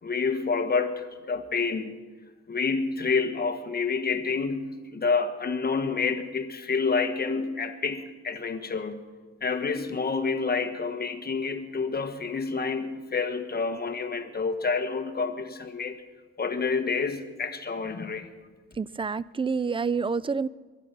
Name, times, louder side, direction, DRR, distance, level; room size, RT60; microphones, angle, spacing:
voice 1, 0.0-1.9 2.5-9.0 9.4-16.0 16.4-18.3, left 4 dB, 30° left, 7 dB, 1.5 m, -28 dB
voice 2, 18.8-20.5, right 5 dB, 20° right, 19 dB, 0.4 m, -28 dB
22.5 x 11.0 x 5.6 m, 1.4 s
cardioid pair, 90°, 30 cm